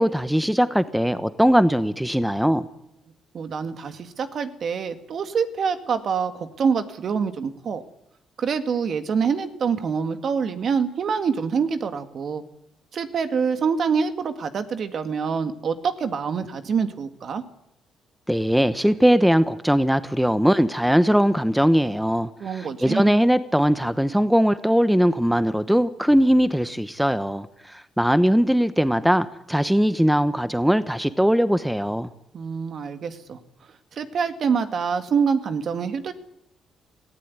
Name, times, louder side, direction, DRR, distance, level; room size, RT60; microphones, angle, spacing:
voice 1, 0.0-2.7 18.3-32.1, equal, 5° right, 13 dB, 0.9 m, -20 dB
voice 2, 3.3-7.8 8.4-12.4 12.9-17.4 22.4-23.1 32.3-33.4 33.9-36.1, right 6 dB, 55° right, 9 dB, 1.9 m, -25 dB
18.5 x 15.5 x 9.6 m, 0.79 s
cardioid pair, 90°, 0 cm